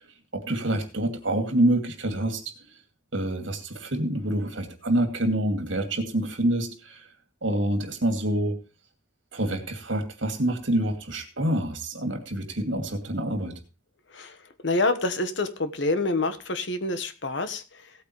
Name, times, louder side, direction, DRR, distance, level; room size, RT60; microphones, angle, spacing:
voice 1, 0.3-2.5 3.1-7.0 7.4-8.6 9.3-13.6, right 1 dB, 75° right, 7 dB, 2.4 m, -27 dB
voice 2, 14.6-17.9, left 2 dB, 70° left, 10 dB, 1.3 m, -27 dB
17.0 x 8.8 x 3.1 m, 0.32 s
head